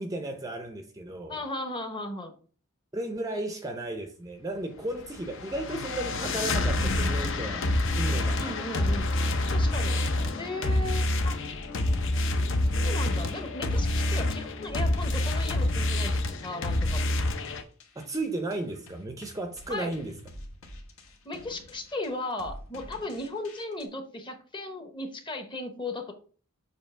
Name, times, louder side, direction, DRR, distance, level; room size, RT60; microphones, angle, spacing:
voice 1, 0.0-1.4 2.9-7.7 8.0-8.9 18.0-20.1, right 2 dB, 15° right, 0.5 m, -34 dB
voice 2, 1.3-2.3 8.4-9.1 9.5-10.0 10.4-11.4 12.7-17.1 19.7-20.0 21.2-26.1, left 2 dB, 20° left, 0.9 m, -36 dB
sound 1, 4.9-17.6, left 1 dB, 60° left, 0.7 m, -27 dB
sound 2, 11.1-23.8, left 1 dB, 75° left, 1.3 m, -48 dB
7.1 x 2.8 x 5.6 m
head